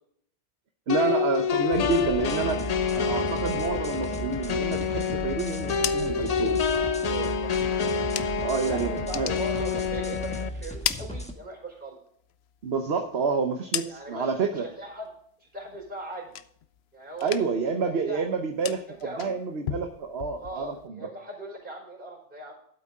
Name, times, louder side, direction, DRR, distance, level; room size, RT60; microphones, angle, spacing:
sound 1, 0.9-10.5, left 6 dB, 45° left, 0.5 m, -28 dB
voice 1, 0.9-6.6 8.4-9.3 12.6-14.7 17.2-21.1, right 4 dB, 60° right, 5 dB, 1.2 m, -29 dB
sound 2, 1.7-11.3, equal, 5° left, 1.3 m, -37 dB
sound 3, 5.5-8.6 8.9-10.3 10.6-11.9 12.2-14.4 14.7-15.2 15.5-16.9 17.1-17.7 18.0-20.9, left 10 dB, 65° left, 0.8 m, -37 dB
voice 2, 7.0-7.6 8.5-12.0 13.9-15.1 15.4-16.3 16.9-18.2 19.0-19.3 20.3-22.5, right 1 dB, 45° right, 0 dB, 5.1 m, -39 dB
12.5 x 8.3 x 3.7 m, 0.65 s
omnidirectional pair, 1.2 m